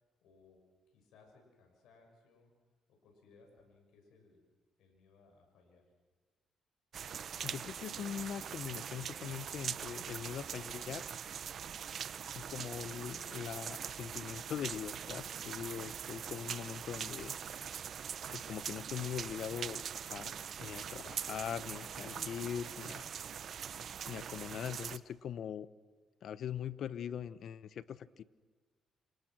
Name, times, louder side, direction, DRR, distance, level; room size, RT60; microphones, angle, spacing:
voice 1, 0.2-0.6 0.9-2.5 2.9-4.4 4.8-5.9, left 4 dB, 85° left, 2 dB, 6.3 m, -64 dB
sound 1, 6.9-25.0, right 8 dB, 60° right, 1.0 m, -42 dB
voice 2, 7.4-11.1 12.3-17.4 18.3-23.2 24.1-25.7 26.2-28.2, left 9 dB, 65° left, 16 dB, 1.0 m, -42 dB
29.5 x 27.5 x 6.2 m, 1.4 s
cardioid pair, 90°, 0 cm